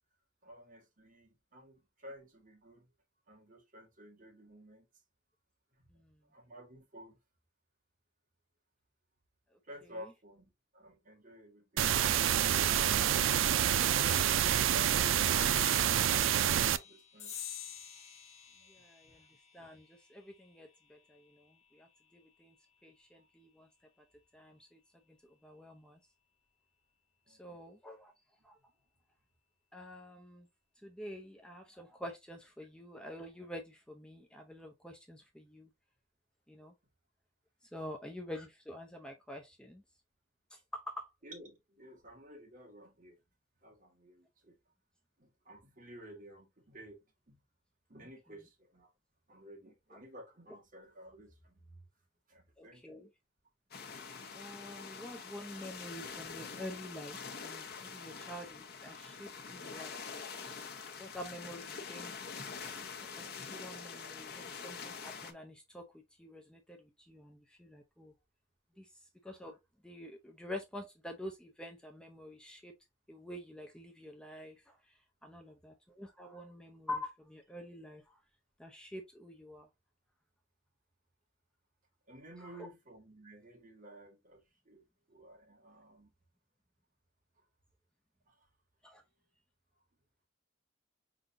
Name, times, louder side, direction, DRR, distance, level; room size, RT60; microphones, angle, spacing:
voice 1, 0.4-2.9 3.3-4.9 5.8-5.9 6.3-7.2 9.7-13.0 16.8-17.4 18.8-19.3 23.2-23.3 27.3-27.6 41.2-43.2 43.6-44.6 45.2-47.4 47.9-48.9 49.3-51.9 52.3-53.0 76.3-76.4 82.1-86.1 87.4-87.5 88.3-88.5, right 1 dB, 45° right, 1.7 m, -53 dB
sound 1, 11.8-16.8, right 10 dB, 85° right, 0.4 m, -27 dB
sound 2, 15.4-22.3, left 8 dB, 35° left, 1.3 m, -49 dB
voice 2, 18.7-19.2 19.5-21.9 22.1-22.5 22.8-23.7 24.3-24.8 25.4-26.0 27.3-28.1 28.4-28.6 29.7-30.5 30.8-35.7 36.5-36.7 37.7-39.8 40.5-41.1 52.6-53.1 54.3-60.2 61.0-62.1 63.0-65.9 66.2-68.1 68.8-68.9 69.2-69.6 69.8-72.8 73.1-74.7 75.2-78.0 78.6-79.7 82.5-82.7 88.8-89.0, left 1 dB, 5° left, 0.6 m, -47 dB
sound 3, 53.7-65.3, left 5 dB, 55° left, 0.8 m, -45 dB
4.9 x 3.9 x 2.6 m
head